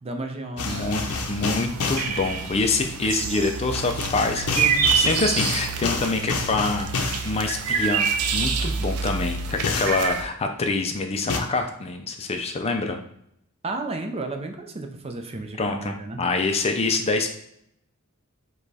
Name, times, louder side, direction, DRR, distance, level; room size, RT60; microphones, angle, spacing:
voice 1, 0.0-1.0 13.6-16.2, right 2 dB, 30° right, 4 dB, 0.5 m, -33 dB
sound 1, 0.6-2.1 3.7-7.3 9.6-10.0 11.3-11.4, left 4 dB, 80° left, 0.6 m, -28 dB
voice 2, 0.6-8.1 8.3-13.0 15.6-17.3, left 3 dB, 30° left, 5 dB, 0.4 m, -26 dB
sound 2, 0.7-10.2, right 6 dB, 85° right, 0.5 m, -27 dB
5.0 x 2.3 x 4.0 m, 0.74 s
head